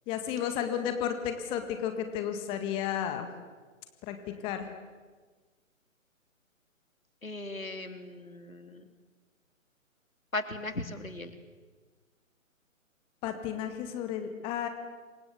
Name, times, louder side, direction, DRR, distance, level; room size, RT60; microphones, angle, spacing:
voice 1, 0.1-3.3 4.0-4.7 13.2-14.7, left 9 dB, 15° left, 7 dB, 1.8 m, -33 dB
voice 2, 7.2-8.9 10.3-11.4, left 2 dB, 80° left, 8 dB, 3.4 m, -37 dB
27.5 x 24.5 x 8.3 m, 1.4 s
figure-of-eight pair, 140°, 41 cm